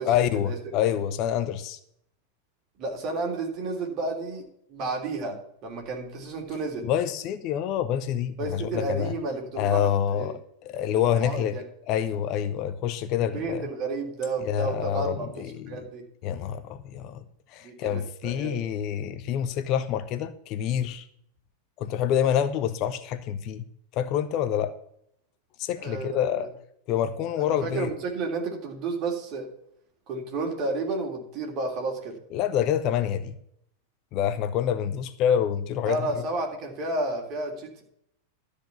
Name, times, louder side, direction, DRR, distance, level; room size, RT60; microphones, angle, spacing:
voice 1, 0.1-1.8 6.8-9.1 9.6-11.6 11.9-13.7 14.4-15.8 16.2-17.2 17.5-21.1 21.8-23.6 23.9-24.7 25.6-26.5 26.9-27.9 32.3-33.3 34.1-36.1, left 9 dB, 40° left, 0.7 m, -27 dB
voice 2, 2.8-4.4 4.7-6.9 8.4-10.3 11.2-11.4 13.2-16.0 17.6-18.6 25.8-26.5 27.4-29.5 30.1-32.2 35.9-37.8, right 3 dB, 35° right, 3.4 m, -31 dB
13.0 x 5.1 x 8.3 m
figure-of-eight pair, 90°, 0 cm